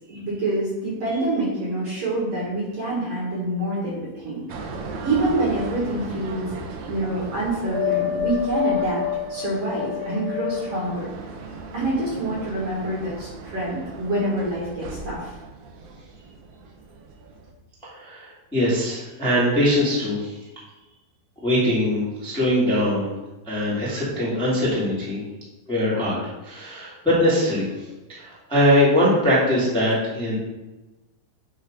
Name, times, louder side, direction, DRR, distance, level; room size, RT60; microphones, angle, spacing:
voice 1, 0.1-4.4 5.0-6.5 6.9-9.0 9.3-11.1 11.7-15.3, right 1 dB, 55° right, -6 dB, 1.9 m, -26 dB
sound 1, 4.5-16.7 17.1-17.5, left 5 dB, 85° right, 1.6 m, -31 dB
voice 2, 17.8-20.3 21.4-23.1 23.4-25.2 25.7-27.7 28.1-30.3, left 1 dB, 5° left, -9 dB, 0.8 m, -22 dB
8.3 x 2.8 x 5.2 m, 1.1 s
omnidirectional pair, 4.5 m